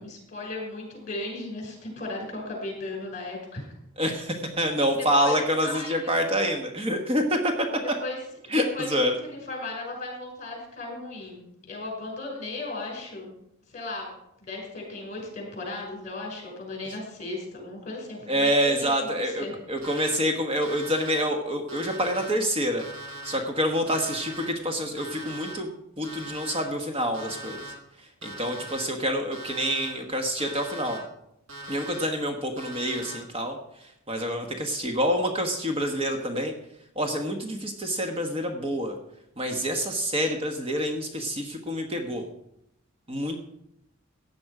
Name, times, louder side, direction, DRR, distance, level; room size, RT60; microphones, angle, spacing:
voice 1, 0.0-3.6 4.9-6.1 7.8-8.2 8.5-8.9 9.2-13.3 13.7-14.1 14.4-18.9 19.1-19.6, left 2 dB, 40° left, 1 dB, 5.4 m, -36 dB
voice 2, 4.0-7.7 8.5-9.2 18.3-22.8 23.2-25.7 26.0-27.6 28.2-31.0 31.7-33.6 34.1-36.5 36.9-38.9 39.4-42.2 43.1-43.4, equal, 25° right, 3 dB, 1.3 m, -27 dB
Alarm, 19.8-20.1 20.6-21.2 21.7-22.3 22.8-23.4 23.9-24.4 25.0-25.5 26.0-26.6 27.1-27.7 28.2-28.8 29.3-29.9 30.4-31.0 31.5-32.1 32.6-33.2, right 1 dB, 80° right, 5.2 m, -40 dB
16.0 x 9.6 x 4.9 m, 0.81 s
head